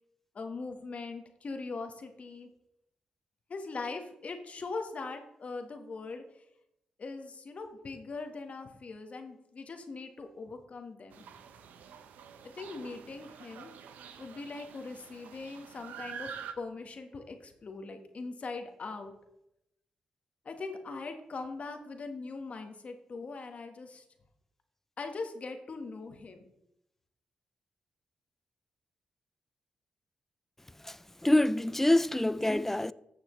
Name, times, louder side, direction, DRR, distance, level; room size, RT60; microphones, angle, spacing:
voice 1, 0.3-2.5 3.5-6.2 7.0-11.2 12.5-13.7 14.2-16.3 16.6-19.1 20.4-24.0 25.0-26.5, left 3 dB, 50° left, 1.4 m, -41 dB
sound 1, 11.1-16.5, right 7 dB, 85° right, 0.7 m, -47 dB
voice 2, 30.8-32.9, left 1 dB, 10° left, 0.4 m, -26 dB
14.5 x 6.7 x 3.2 m
supercardioid pair, 55°, 3 cm